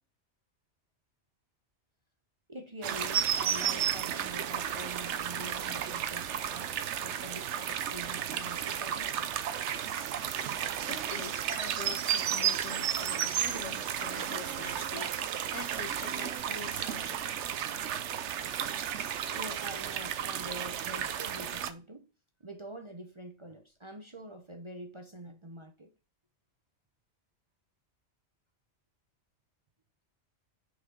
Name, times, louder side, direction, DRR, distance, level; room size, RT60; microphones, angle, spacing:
voice 1, 2.5-9.3 19.0-22.1 22.4-25.9, right 1 dB, 30° right, 0.7 m, -46 dB
sound 1, 2.8-21.7, right 9 dB, 75° right, 0.9 m, -33 dB
voice 2, 10.9-17.3, left 5 dB, 85° left, 1.9 m, -44 dB
6.3 x 5.4 x 3.8 m
omnidirectional pair, 1.2 m